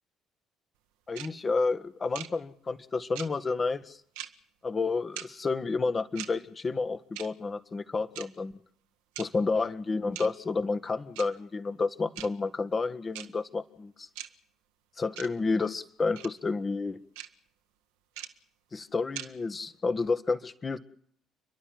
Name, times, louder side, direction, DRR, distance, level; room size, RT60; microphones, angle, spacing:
voice 1, 1.1-4.0 4.6-8.5 9.2-14.1 15.0-17.0 18.7-20.8, left 4 dB, 30° left, 12 dB, 1.6 m, -30 dB
sound 1, 1.2-1.3 2.1-2.3 3.2-3.3 4.2-4.3 5.2-5.3 6.2-6.3 7.2-7.3 8.2-8.3 9.2-9.3 10.2-10.3 11.2-11.3 12.2-12.3 13.1-13.3 14.2-14.3 15.2-15.3 16.2-16.3 17.2-17.3 18.2-18.3 19.2-19.3, right 13 dB, 70° right, 1.3 m, -39 dB
30.0 x 11.5 x 9.4 m, 0.63 s
figure-of-eight pair, 50°, 0 cm